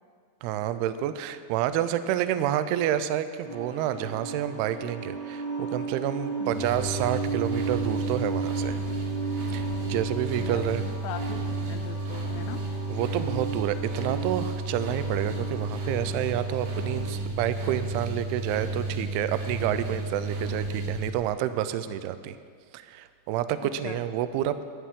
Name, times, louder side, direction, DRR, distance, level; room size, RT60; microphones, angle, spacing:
voice 1, 0.4-8.8 9.5-10.8 12.9-22.4 22.7-24.6, right 11 dB, 80° right, 12 dB, 2.4 m, -29 dB
sound 1, 3.4-17.1, right 4 dB, 45° right, 5.6 m, -35 dB
loop lavadora centrifugando washer machine spin dry, 6.5-21.1, right 2 dB, 65° right, 3.2 m, -32 dB
voice 2, 10.4-12.6 23.6-24.0, left 10 dB, 85° left, 7 dB, 2.7 m, -40 dB
22.0 x 10.0 x 3.6 m, 2.1 s
omnidirectional pair, 4.9 m